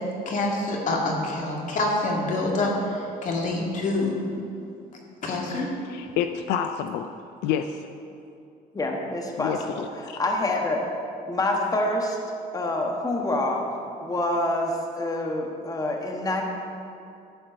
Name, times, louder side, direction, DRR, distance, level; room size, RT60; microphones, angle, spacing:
voice 1, 0.3-4.1 5.2-5.7, left 2 dB, 50° left, -1 dB, 2.2 m, -26 dB
voice 2, 5.8-7.1 7.4-7.9 9.4-10.2, left 9 dB, 85° left, 8 dB, 0.5 m, -28 dB
voice 3, 8.7-10.8 11.3-12.2 12.5-13.6 14.0-16.4, left 1 dB, 20° left, 1 dB, 1.3 m, -26 dB
12.5 x 4.5 x 7.7 m, 2.6 s
cardioid pair, 110°, 17 cm